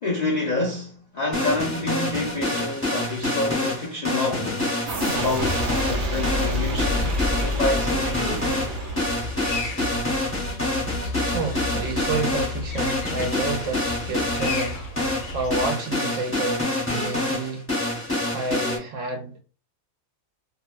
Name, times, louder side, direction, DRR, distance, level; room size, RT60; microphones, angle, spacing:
voice 1, 0.0-4.8 5.1-8.7, left 2 dB, 60° left, 0.4 m, -28 dB
sound 1, 1.3-18.8, left 2 dB, 10° left, 0.6 m, -27 dB
sound 2, 4.9-9.5, equal, 50° right, 0.7 m, -28 dB
sound 3, 5.8-15.7, left 2 dB, 80° left, 1.1 m, -34 dB
voice 2, 11.3-14.9 15.3-19.4, right 3 dB, 70° right, 1.0 m, -30 dB
2.7 x 2.1 x 2.4 m
omnidirectional pair, 1.4 m